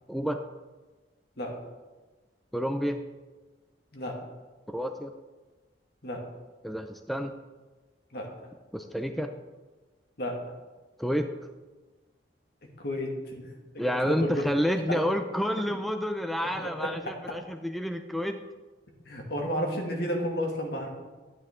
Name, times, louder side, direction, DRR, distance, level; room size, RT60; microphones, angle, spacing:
voice 1, 0.1-0.4 2.5-3.0 4.7-5.1 6.6-7.3 8.7-9.3 11.0-11.3 13.8-18.4, equal, ahead, 6 dB, 0.4 m, -29 dB
voice 2, 12.8-13.4 13.7-14.4 14.9-15.0 16.6-17.4 19.1-20.9, equal, 60° left, 0 dB, 2.2 m, -32 dB
12.0 x 9.9 x 3.7 m, 1.3 s
head